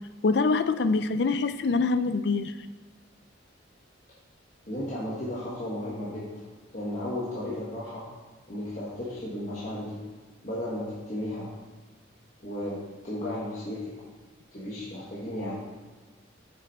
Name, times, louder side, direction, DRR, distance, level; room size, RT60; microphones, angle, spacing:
voice 1, 0.2-2.5, left 4 dB, 55° left, 11 dB, 0.4 m, -24 dB
voice 2, 4.7-6.4 6.7-8.1 8.5-10.0 10.4-11.5 12.4-13.9 14.5-15.5, left 1 dB, 40° left, -8 dB, 1.5 m, -34 dB
7.5 x 6.8 x 4.2 m, 1.3 s
head